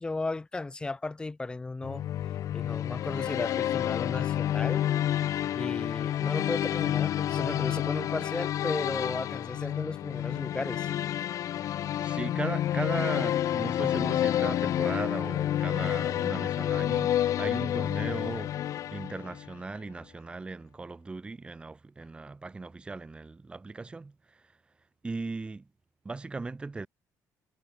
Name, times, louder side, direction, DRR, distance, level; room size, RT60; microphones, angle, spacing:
voice 1, 0.0-2.1 2.5-4.8 5.5-10.9, left 3 dB, 15° left, 1.9 m, -35 dB
sound 1, 1.8-19.5, left 11 dB, 50° left, 0.5 m, -29 dB
voice 2, 12.0-18.6 18.9-24.6 25.0-25.7 26.0-26.9, right 3 dB, 15° right, 1.3 m, -37 dB
cardioid pair, 165°, 7 cm